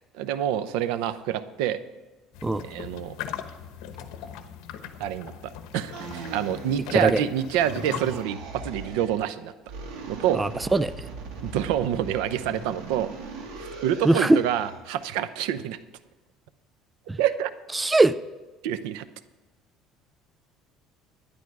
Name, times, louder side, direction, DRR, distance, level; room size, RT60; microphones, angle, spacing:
voice 1, 0.1-1.8 2.6-3.2 5.0-9.5 10.1-10.4 11.4-13.1 13.6-15.8 17.2-17.5 18.6-19.1, right 10 dB, 90° right, 13 dB, 0.7 m, -27 dB
sound 1, 2.3-8.2, left 9 dB, 75° left, 1.1 m, -39 dB
sound 2, 5.9-7.2 7.5-9.2 9.6-14.8, right 4 dB, 75° right, 3.1 m, -39 dB
voice 2, 10.3-11.1 14.0-14.4 17.1-17.2 17.7-18.1, right 2 dB, 10° right, 15 dB, 0.3 m, -21 dB
11.5 x 10.5 x 4.8 m, 1.2 s
cardioid pair, 145°, 0 cm